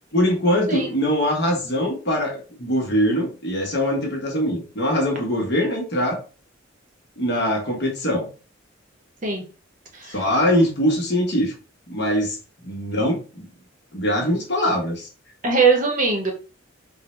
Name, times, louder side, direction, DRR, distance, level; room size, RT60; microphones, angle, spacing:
voice 1, 0.1-6.2 7.2-8.3 10.1-11.5 11.9-12.4 12.6-13.5 13.9-15.1, equal, 55° left, 0 dB, 1.0 m, -22 dB
voice 2, 15.4-16.3, right 4 dB, 40° right, 2 dB, 0.7 m, -20 dB
3.6 x 2.1 x 3.0 m, 0.35 s
head